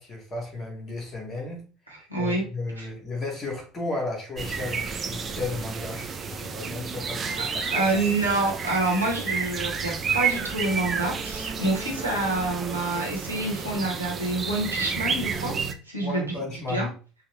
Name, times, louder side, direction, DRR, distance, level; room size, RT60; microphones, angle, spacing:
voice 1, 0.0-1.6 2.2-7.9 16.0-16.9, left 2 dB, 30° left, -1 dB, 1.3 m, -34 dB
voice 2, 1.9-2.4 2.8-2.9 7.4-15.5 15.8-16.4 16.7-16.9, right 2 dB, 85° right, -2 dB, 1.0 m, -27 dB
sound 1, 4.4-15.7, right 6 dB, 30° right, 0.4 m, -31 dB
3.3 x 2.2 x 3.1 m, 0.37 s
figure-of-eight pair, 65°, 0 cm